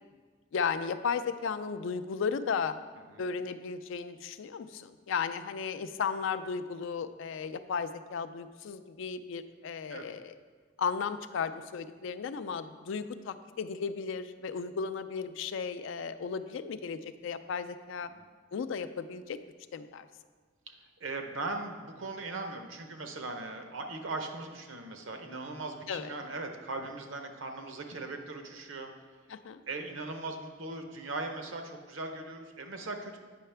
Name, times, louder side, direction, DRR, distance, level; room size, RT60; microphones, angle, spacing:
voice 1, 0.5-2.8 3.2-10.4 10.8-18.1 18.5-19.4 19.7-20.1 25.9-26.1 29.3-29.6, left 6 dB, 70° left, 11 dB, 0.4 m, -35 dB
voice 2, 20.7-28.9 29.7-33.2, right 2 dB, 70° right, 5 dB, 0.8 m, -39 dB
8.6 x 5.6 x 3.3 m, 1.5 s
head